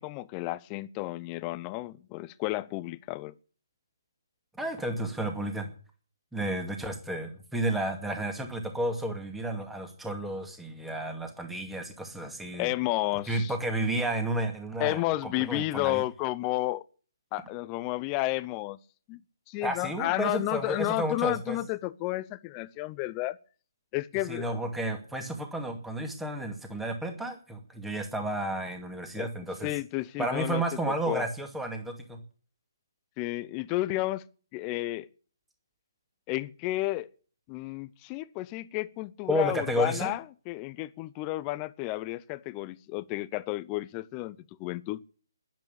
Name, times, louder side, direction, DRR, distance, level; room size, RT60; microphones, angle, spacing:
voice 1, 0.0-3.3 12.6-13.5 14.8-16.8 17.3-18.8 19.1-19.2 19.5-23.4 23.9-24.6 29.2-29.3 29.6-30.6 31.1-31.2 33.2-34.2 34.5-35.1 36.3-37.1 37.5-45.0, left 18 dB, 20° left, 0.7 m, -32 dB
voice 2, 4.5-5.7 6.3-12.7 13.3-16.0 19.6-21.6 24.3-29.7 30.2-32.2 39.3-40.1, right 1 dB, 5° right, 2.4 m, -32 dB
10.5 x 10.5 x 8.7 m
figure-of-eight pair, 150°, 2 cm